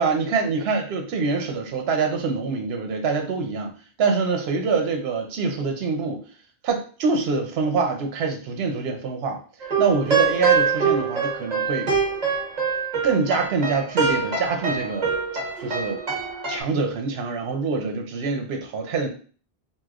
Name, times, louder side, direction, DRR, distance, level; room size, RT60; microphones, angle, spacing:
voice 1, 0.0-3.7 4.0-6.2 6.6-9.4 9.8-11.9 13.0-15.1 15.6-16.0 16.5-19.1, right 4 dB, 75° right, 5 dB, 0.9 m, -25 dB
sound 1, 9.6-16.6, right 5 dB, 45° right, 0.9 m, -24 dB
3.0 x 2.8 x 2.4 m, 0.40 s
omnidirectional pair, 1.0 m